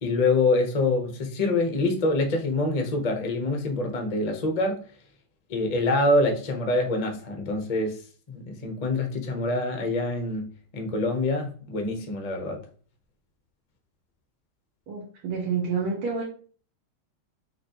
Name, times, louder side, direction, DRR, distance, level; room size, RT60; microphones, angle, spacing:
voice 1, 0.0-4.8 5.5-8.0 8.3-12.6, left 2 dB, 50° left, 4 dB, 0.4 m, -25 dB
voice 2, 14.9-16.2, right 5 dB, 80° right, -4 dB, 2.0 m, -28 dB
5.9 x 3.0 x 2.9 m, 0.42 s
omnidirectional pair, 2.3 m